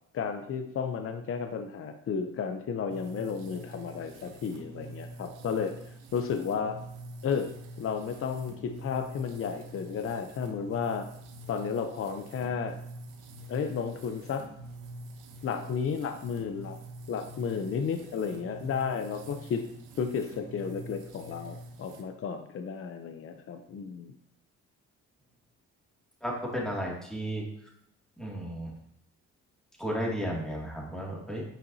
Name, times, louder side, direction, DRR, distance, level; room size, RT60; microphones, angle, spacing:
voice 1, 0.1-5.7 6.1-6.8 7.2-7.5 7.8-11.1 11.5-12.8 13.5-14.5 15.4-16.8 17.1-19.6 20.0-24.1, left 6 dB, 45° left, 7 dB, 0.6 m, -33 dB
sound 1, 2.9-22.0, right 1 dB, 85° right, 1.0 m, -46 dB
voice 2, 26.2-27.4 28.2-28.7 29.8-31.4, equal, ahead, -4 dB, 2.3 m, -33 dB
8.8 x 5.1 x 2.7 m, 0.73 s
cardioid pair, 90°, 30 cm